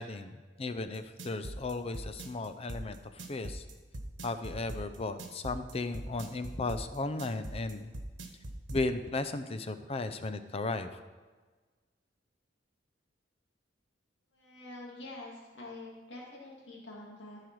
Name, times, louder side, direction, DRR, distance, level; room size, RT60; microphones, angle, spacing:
voice 1, 0.0-3.6 4.2-7.9 8.7-10.9, left 3 dB, 35° left, 10 dB, 0.5 m, -35 dB
sound 1, 0.9-8.8, right 1 dB, 80° right, 1.2 m, -41 dB
voice 2, 14.3-17.4, left 2 dB, 70° left, -4 dB, 2.2 m, -46 dB
14.5 x 4.9 x 4.7 m, 1.4 s
head